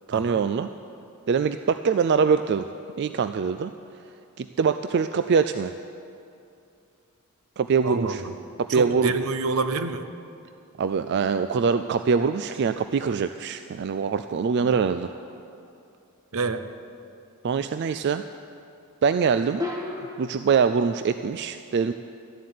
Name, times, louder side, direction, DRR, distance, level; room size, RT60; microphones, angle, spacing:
voice 1, 0.1-0.7 1.3-2.7 3.0-3.7 4.4-5.7 7.6-8.2 8.7-9.1 10.8-15.1 17.4-18.2 19.0-19.7 20.2-21.9, right 5 dB, 50° right, 10 dB, 0.3 m, -23 dB
voice 2, 7.8-8.4 8.7-10.1 14.6-14.7 16.3-16.7, right 3 dB, 75° right, 10 dB, 0.7 m, -27 dB
sound 1, 15.0-15.6 19.6-20.5, left 3 dB, 15° right, 1.5 m, -34 dB
13.0 x 7.6 x 9.4 m, 2.6 s
head